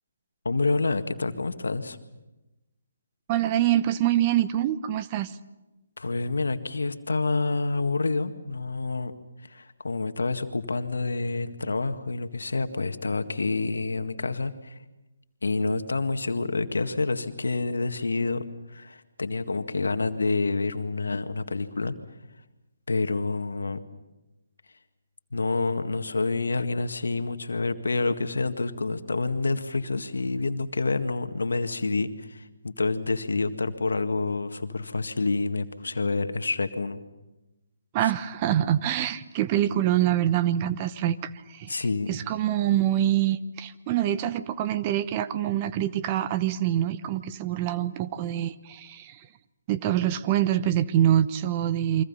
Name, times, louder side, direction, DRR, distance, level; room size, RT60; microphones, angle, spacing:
voice 1, 0.5-2.0 6.0-9.1 9.5-14.8 15.4-18.4 18.7-21.9 22.9-23.8 25.3-37.0 38.0-38.1 41.7-42.1, left 3 dB, 75° left, 8 dB, 1.9 m, -28 dB
voice 2, 3.3-5.4 37.9-41.8 42.1-49.2 49.7-52.0, right 12 dB, 30° right, 13 dB, 1.0 m, -25 dB
29.5 x 24.0 x 5.6 m, 1.0 s
figure-of-eight pair, 140°, 0 cm